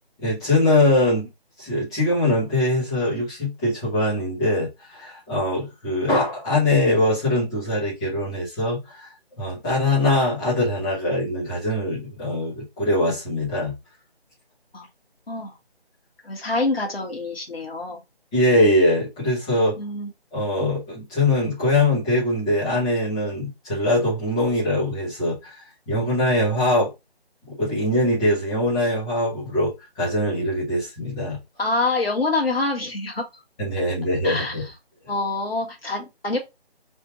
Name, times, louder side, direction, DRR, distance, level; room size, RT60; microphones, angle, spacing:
voice 1, 0.2-1.3 1.6-9.1 9.4-13.7 18.3-19.8 20.3-26.9 27.5-31.4 33.6-34.6, left 1 dB, 5° left, 0.8 m, -22 dB
voice 2, 16.2-18.0 19.8-20.1 31.6-33.2 34.2-34.6 35.1-36.4, left 2 dB, 65° left, 1.6 m, -26 dB
3.4 x 2.7 x 3.0 m
figure-of-eight pair, 155°, 32 cm